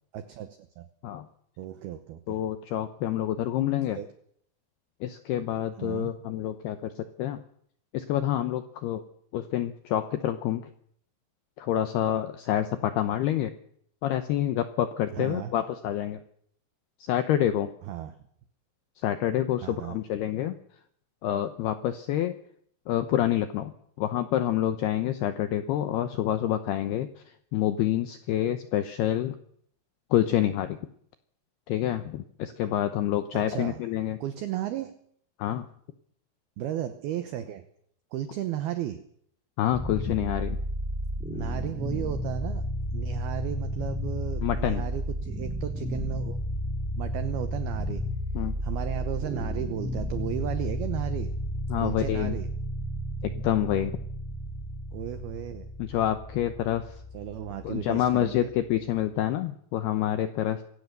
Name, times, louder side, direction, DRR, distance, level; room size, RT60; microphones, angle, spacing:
voice 1, 0.1-0.9 1.6-2.4 4.0-4.1 5.8-6.1 15.1-15.5 17.9-18.2 19.6-20.0 33.3-33.9 34.2-35.0 36.6-37.7 38.1-39.0 41.3-46.4 47.0-48.1 48.6-51.4 51.8-52.5 54.9-55.7 57.1-58.5, right 11 dB, 85° right, 11 dB, 2.2 m, -34 dB
voice 2, 2.3-4.0 5.0-7.4 7.9-9.0 9.3-10.6 11.6-13.5 14.0-16.2 17.0-17.7 19.0-20.6 21.2-22.3 22.9-27.1 27.5-29.4 30.1-30.8 31.7-34.2 35.4-35.7 39.6-40.6 44.4-44.9 48.3-48.5 51.7-52.3 53.2-53.9 55.8-57.0 57.6-60.6, left 12 dB, 80° left, 10 dB, 2.3 m, -27 dB
sound 1, 39.7-58.7, equal, ahead, 1.8 m, -33 dB
24.0 x 17.0 x 6.8 m, 0.66 s
omnidirectional pair, 5.9 m